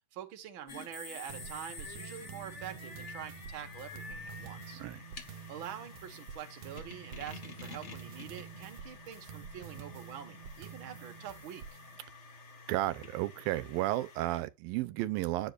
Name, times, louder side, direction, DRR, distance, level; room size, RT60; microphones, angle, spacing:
voice 1, 0.1-4.8 5.5-11.6, right 10 dB, 50° right, 1.7 m, -45 dB
sound 1, 0.7-14.4, left 4 dB, 65° left, 0.6 m, -49 dB
sound 2, 1.3-12.0, right 8 dB, 65° right, 2.2 m, -49 dB
voice 2, 12.7-15.5, right 16 dB, 85° right, 2.5 m, -33 dB
9.9 x 7.6 x 2.5 m
omnidirectional pair, 4.1 m